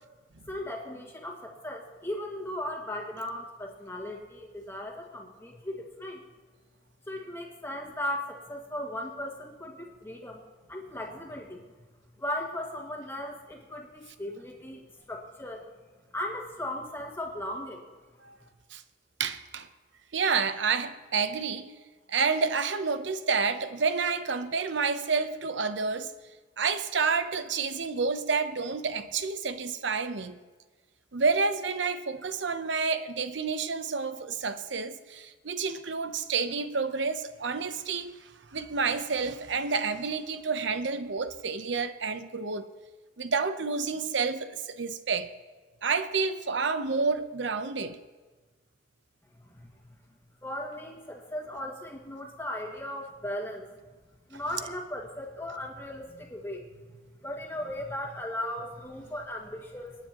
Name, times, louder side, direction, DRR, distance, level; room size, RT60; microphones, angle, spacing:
voice 1, 0.5-6.2 7.1-10.4 10.7-11.6 12.2-14.8 15.1-15.6 16.1-17.9 49.5-49.7 50.4-53.7 54.3-56.7 57.2-60.0, left 1 dB, 10° left, 1.8 m, -37 dB
voice 2, 19.2-19.7 20.1-21.7 22.1-26.1 26.6-30.4 31.1-38.1 38.5-42.7 43.2-45.3 45.8-48.0, right 5 dB, 70° right, 0.8 m, -29 dB
27.5 x 10.0 x 3.0 m
head